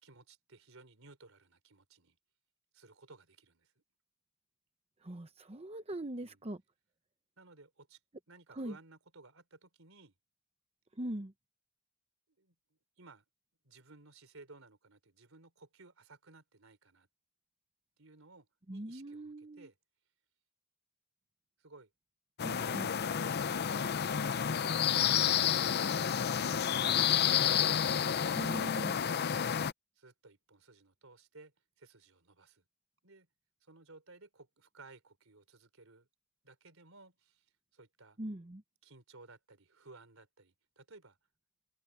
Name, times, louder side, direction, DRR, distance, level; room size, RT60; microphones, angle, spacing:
voice 1, 0.0-2.2 2.7-3.8 6.2-6.4 7.4-8.0 8.3-10.1 12.4-13.2 13.6-17.1 18.0-19.8 21.6-21.9 22.4-23.1 30.0-32.6 33.0-33.3 33.6-36.1 36.4-37.5 37.7-38.2 38.8-41.2, right 3 dB, 75° right, 4.1 m, -58 dB
voice 2, 5.0-6.6 8.5-8.7 11.0-11.3 18.7-19.7 22.4-22.9 28.4-29.0 38.2-38.6, right 1 dB, 30° right, 0.9 m, -41 dB
sound 1, 22.4-29.7, left 8 dB, 50° left, 0.5 m, -30 dB
head